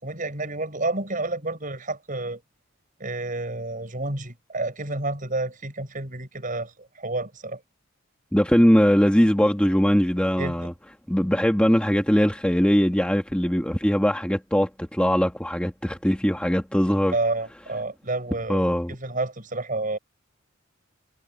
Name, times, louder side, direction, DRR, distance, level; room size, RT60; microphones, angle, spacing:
voice 1, 0.0-2.4 3.0-7.6 10.4-10.7 17.1-20.0, right 2 dB, 40° right, 7.1 m, -30 dB
voice 2, 8.3-10.7 11.1-17.1 18.5-18.9, equal, 5° left, 1.5 m, -21 dB
head